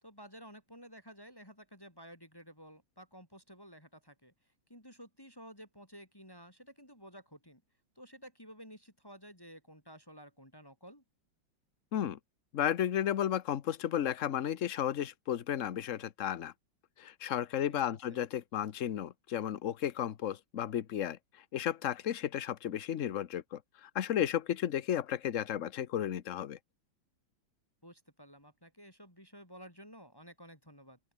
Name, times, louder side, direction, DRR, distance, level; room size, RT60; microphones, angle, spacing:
voice 1, 0.0-7.6 8.0-11.0 17.7-18.3 27.8-31.0, equal, 10° left, 5.5 m, -53 dB
voice 2, 12.5-16.5 17.0-21.2 21.5-26.6, left 10 dB, 50° left, 1.1 m, -33 dB
open air
omnidirectional pair, 2.1 m